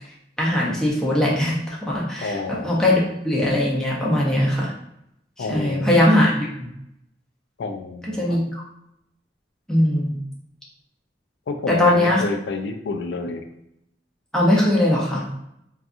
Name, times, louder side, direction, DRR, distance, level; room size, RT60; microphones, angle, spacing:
voice 1, 0.4-4.7 5.4-6.5 8.2-8.6 9.7-10.2 11.7-12.2 14.3-15.2, left 1 dB, 5° left, -5 dB, 0.5 m, -20 dB
voice 2, 2.2-3.0 5.4-6.2 7.6-8.4 11.5-13.4, left 3 dB, 80° left, 6 dB, 0.3 m, -29 dB
2.6 x 2.3 x 2.4 m, 0.80 s
head